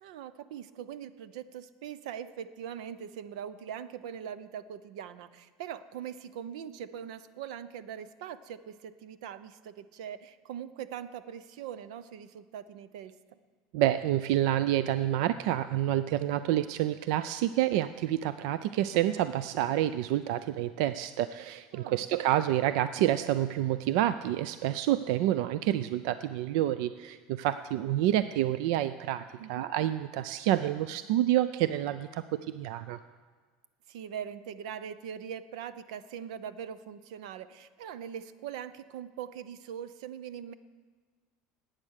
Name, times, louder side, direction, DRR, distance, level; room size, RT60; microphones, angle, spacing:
voice 1, 0.0-13.1 21.7-22.1 29.4-29.7 33.9-40.5, right 9 dB, 80° right, 14 dB, 0.7 m, -41 dB
voice 2, 13.7-29.2 29.5-33.0, right 13 dB, 60° right, 13 dB, 0.4 m, -28 dB
18.0 x 8.9 x 6.5 m, 1.5 s
cardioid pair, 175°, 4 cm